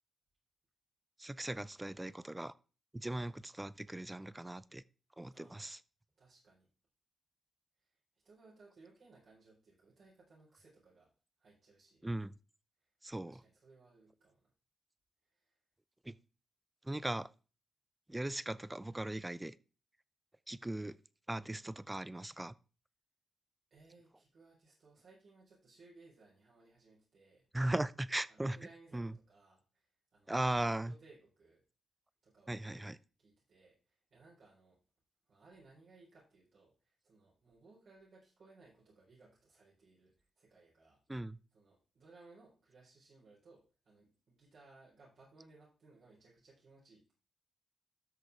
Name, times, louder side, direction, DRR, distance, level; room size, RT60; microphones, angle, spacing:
voice 1, 1.2-2.5 2.9-4.8 5.2-5.8 12.0-12.3 13.0-13.4 16.1-16.2 16.8-17.3 18.1-19.5 20.5-21.0 21.3-22.5 27.5-28.6 28.9-29.1 30.3-30.9 32.5-33.0 41.1-41.4, right 1 dB, 15° right, 0.6 m, -38 dB
voice 2, 5.3-5.7 6.2-6.7 8.2-11.1 11.4-12.0 12.8-12.9 13.2-14.5 15.3-15.5 23.7-27.5 28.3-31.6 32.2-32.8 33.2-34.8 35.3-41.0 41.5-47.1, right 3 dB, 65° right, 4.4 m, -63 dB
13.0 x 6.3 x 3.6 m
cardioid pair, 65°, 0 cm